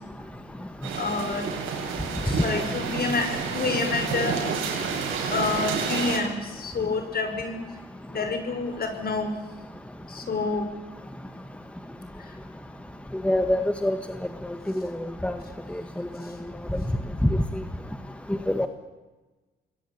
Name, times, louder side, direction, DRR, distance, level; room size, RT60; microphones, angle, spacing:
sound 1, 0.8-6.2, right 6 dB, 85° right, 6.5 m, -30 dB
voice 1, 1.0-1.8 2.2-4.7 5.3-7.6 8.1-9.3 10.1-10.7, left 4 dB, 50° left, 7 dB, 6.2 m, -28 dB
voice 2, 13.2-14.0 14.7-15.4 15.7-16.1 17.3-17.4 18.5-18.7, left 1 dB, 5° left, 8 dB, 1.7 m, -25 dB
27.0 x 21.0 x 8.9 m, 1.2 s
cardioid pair, 90°, 20 cm